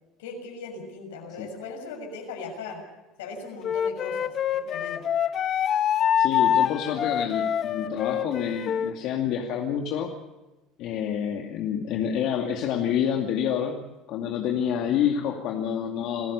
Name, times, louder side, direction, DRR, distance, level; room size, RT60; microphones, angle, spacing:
voice 1, 0.2-2.8 3.2-5.1, left 3 dB, 85° left, 3 dB, 6.6 m, -38 dB
Wind instrument woodwind instrument, 3.6-8.9, left 9 dB, 50° left, 1.3 m, -25 dB
voice 2, 6.2-10.1 10.8-16.3, left 8 dB, 65° left, 2 dB, 2.4 m, -28 dB
28.0 x 14.5 x 6.9 m, 1.1 s
supercardioid pair, 85°, 0 cm